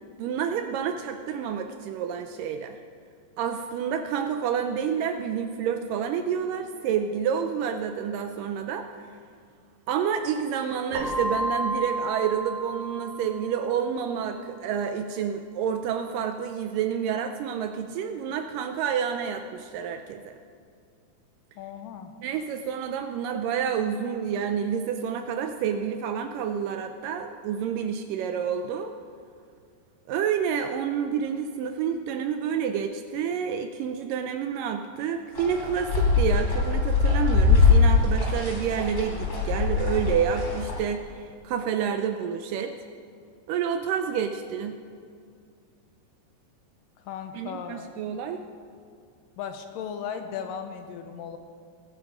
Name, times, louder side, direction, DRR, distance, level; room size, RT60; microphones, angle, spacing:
voice 1, 0.2-2.8 3.4-8.9 9.9-20.4 22.2-28.9 30.1-42.7 43.5-44.8 47.3-48.4, right 7 dB, 80° right, 6 dB, 2.0 m, -29 dB
Keyboard (musical), 10.9-13.7, right 1 dB, 60° right, 2.5 m, -31 dB
voice 2, 21.6-22.1 47.1-47.9 49.4-51.4, left 7 dB, 80° left, 7 dB, 2.2 m, -36 dB
sound 1, 35.4-40.8, left 4 dB, 40° left, 4.2 m, -22 dB
22.0 x 7.5 x 5.0 m, 2.3 s
omnidirectional pair, 4.3 m